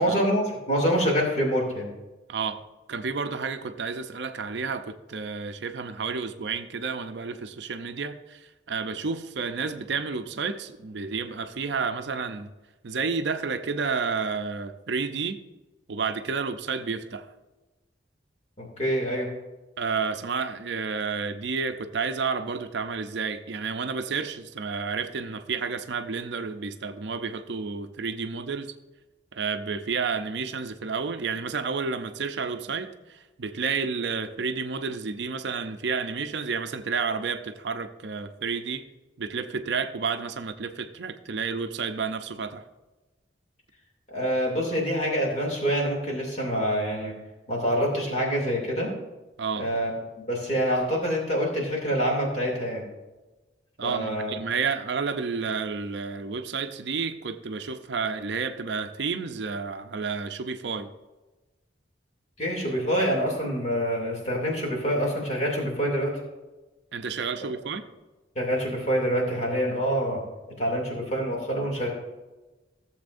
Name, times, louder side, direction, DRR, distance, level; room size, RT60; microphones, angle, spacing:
voice 1, 0.0-1.9 18.6-19.3 44.1-47.1 47.5-48.9 49.6-49.9 50.3-52.8 53.8-54.3 62.4-66.1 68.4-70.2 70.6-71.9, equal, 40° left, -1 dB, 2.5 m, -26 dB
voice 2, 2.3-2.6 2.9-12.5 12.8-15.4 15.9-17.3 19.8-28.7 29.3-38.8 39.2-42.6 49.4-49.7 53.8-60.9 66.9-67.8, right 5 dB, 65° right, 8 dB, 0.5 m, -31 dB
15.5 x 7.3 x 2.6 m, 1.1 s
head